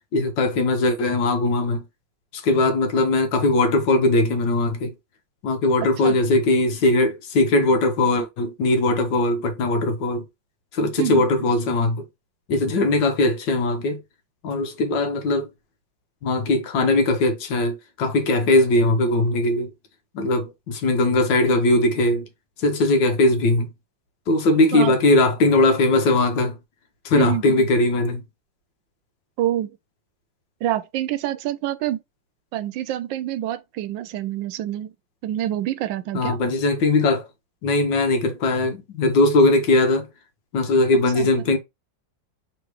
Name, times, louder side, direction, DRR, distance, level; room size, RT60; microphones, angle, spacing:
voice 1, 0.1-1.8 2.3-4.9 5.4-10.2 10.7-12.0 12.5-14.0 14.4-15.5 16.2-19.7 20.1-22.2 22.6-23.7 24.3-26.6 27.0-28.2 36.1-37.3 37.6-40.1 40.5-41.6, left 2 dB, 75° left, 1.6 m, -20 dB
voice 2, 11.0-11.5 24.7-24.9 27.1-27.7 29.4-29.7 30.6-32.0 32.5-34.9 35.2-36.4 41.1-41.3, right 12 dB, 85° right, 1.3 m, -26 dB
3.6 x 3.2 x 4.6 m
omnidirectional pair, 2.0 m